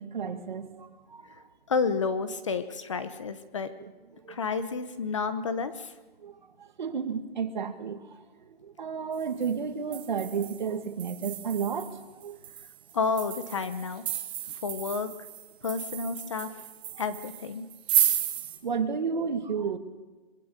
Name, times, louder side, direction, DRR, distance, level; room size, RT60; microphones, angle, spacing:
voice 1, 0.0-1.5 3.8-3.9 4.2-4.4 6.2-12.4 16.9-17.0 18.6-19.8, right 6 dB, 50° right, 8 dB, 2.3 m, -32 dB
voice 2, 1.7-3.7 4.3-5.9 12.9-14.0 14.6-15.1 15.6-16.5 17.0-17.7, left 5 dB, 30° left, 12 dB, 1.0 m, -30 dB
sound 1, 9.2-9.5 9.9-18.6, right 12 dB, 10° right, 0.8 m, -33 dB
24.0 x 22.0 x 6.7 m, 1.2 s
hypercardioid pair, 175°, 31 cm